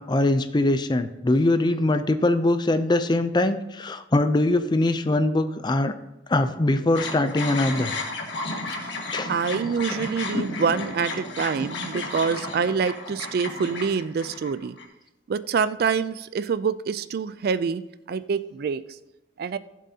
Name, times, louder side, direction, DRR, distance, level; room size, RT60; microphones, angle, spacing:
voice 1, 0.0-5.9 6.3-7.9 9.1-9.3 10.3-10.4 11.9-12.0, left 2 dB, 25° left, 10 dB, 0.4 m, -22 dB
sound 1, 6.9-14.8, left 2 dB, 65° left, 1.7 m, -33 dB
voice 2, 9.3-14.8 15.3-17.8 18.1-18.8 19.4-19.6, right 6 dB, 55° right, 15 dB, 0.3 m, -26 dB
15.0 x 7.4 x 2.8 m, 0.97 s
head